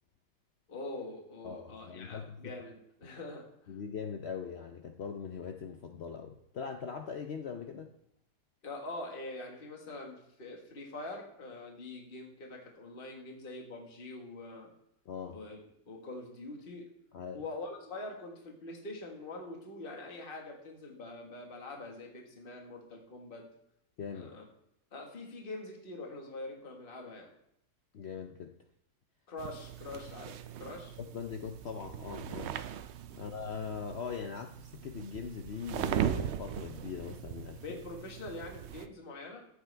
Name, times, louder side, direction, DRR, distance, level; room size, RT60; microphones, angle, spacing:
voice 1, 0.7-3.5 8.6-14.7 15.3-16.9 17.3-23.4 24.1-24.4 24.9-27.3 29.3-30.9 33.1-33.3 37.6-39.5, left 2 dB, 35° left, 1 dB, 1.7 m, -44 dB
voice 2, 1.4-2.5 3.7-7.9 15.1-15.4 17.1-17.4 24.0-24.3 27.9-28.6 31.0-32.6 33.2-37.8, left 6 dB, 60° left, 5 dB, 0.7 m, -41 dB
sound 1, 29.4-38.9, right 9 dB, 80° right, 0.6 m, -39 dB
14.0 x 8.0 x 3.3 m, 0.78 s
omnidirectional pair, 1.7 m